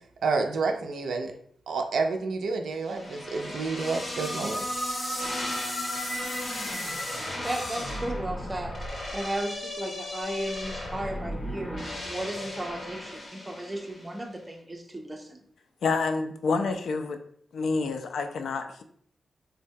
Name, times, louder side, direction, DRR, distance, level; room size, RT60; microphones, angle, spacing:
voice 1, 0.2-1.3 1.7-4.6, right 4 dB, 80° right, 4 dB, 0.4 m, -29 dB
sound 1, 2.9-14.1, left 1 dB, 35° left, 0.6 m, -34 dB
voice 2, 7.4-8.8 9.1-15.4, right 1 dB, 15° right, 3 dB, 0.4 m, -35 dB
voice 3, 15.8-17.2 17.5-18.8, left 4 dB, 80° left, 6 dB, 0.3 m, -28 dB
3.7 x 2.2 x 2.6 m, 0.64 s
wide cardioid pair, 170°, 0 cm